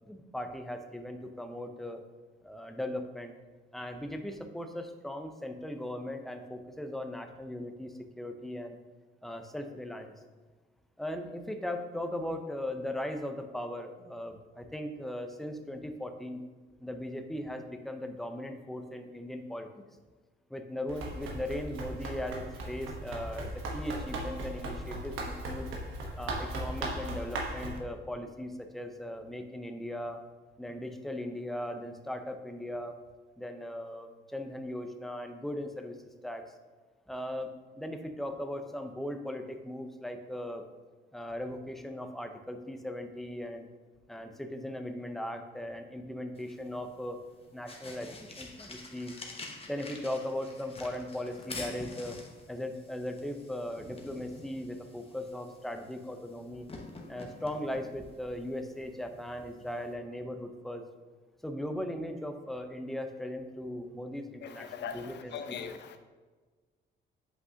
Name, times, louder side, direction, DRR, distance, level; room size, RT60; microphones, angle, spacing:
voice 1, 0.0-2.0 2.4-3.3 3.7-8.8 9.2-10.2 11.0-16.4 16.8-19.8 20.5-25.7 26.2-30.2 30.6-33.0 33.4-36.5 37.1-37.5 37.8-40.6 41.1-43.7 44.1-47.2 47.5-49.1 49.7-52.2 52.5-56.7 57.1-60.9 61.4-65.7, left 1 dB, ahead, 6 dB, 0.6 m, -38 dB
Run, 20.9-27.8, right 1 dB, 90° right, 1.1 m, -37 dB
sound 1, 46.3-59.9, left 3 dB, 30° left, 1.1 m, -48 dB
voice 2, 64.4-66.0, left 7 dB, 60° left, 8 dB, 0.7 m, -40 dB
8.0 x 5.4 x 2.8 m, 1.4 s
cardioid pair, 90°, 20 cm